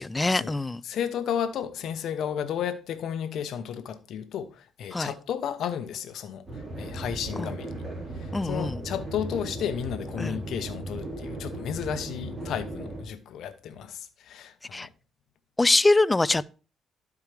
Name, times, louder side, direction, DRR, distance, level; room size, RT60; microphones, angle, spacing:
voice 1, 0.0-0.8 4.9-5.1 7.4-7.5 8.3-8.8 10.2-10.4 14.7-14.9 15.6-16.5, left 2 dB, 20° left, 0.3 m, -23 dB
voice 2, 0.8-6.5 6.8-7.8 8.2-14.9, left 8 dB, 75° left, 0.9 m, -33 dB
sound 1, 6.5-13.0, right 1 dB, 15° right, 3.9 m, -36 dB
12.0 x 4.8 x 3.3 m
cardioid pair, 90°, 0 cm